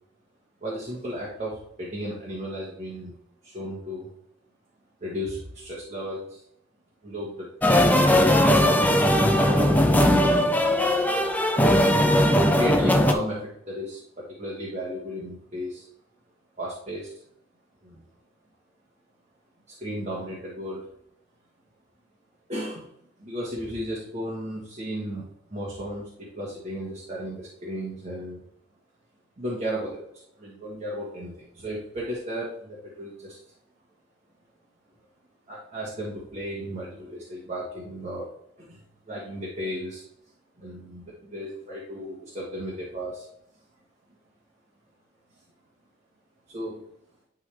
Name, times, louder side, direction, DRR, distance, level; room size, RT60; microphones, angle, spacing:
voice 1, 0.6-3.1 3.4-4.1 5.0-6.4 7.0-8.3 8.9-10.5 12.5-15.9 16.6-17.1 17.8-18.0 19.7-20.9 22.5-22.9 23.2-28.4 29.4-30.0 30.4-33.4 35.5-38.3 38.6-40.0 40.6-43.3 46.5-46.9, equal, 35° right, -5 dB, 1.6 m, -34 dB
sound 1, 7.6-13.1, left 1 dB, 10° left, 0.5 m, -19 dB
11.0 x 3.7 x 3.5 m, 0.73 s
head